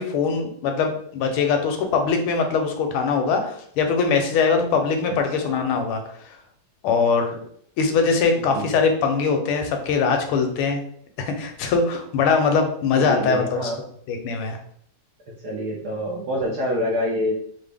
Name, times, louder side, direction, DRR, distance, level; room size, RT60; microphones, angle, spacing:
voice 1, 0.0-6.0 6.8-7.4 7.8-10.8 11.2-13.7 14.1-14.6, left 5 dB, 80° left, 4 dB, 1.5 m, -22 dB
voice 2, 8.4-8.8 12.9-13.8 15.4-17.3, equal, 70° right, -2 dB, 0.9 m, -27 dB
3.9 x 2.1 x 3.3 m, 0.64 s
omnidirectional pair, 2.4 m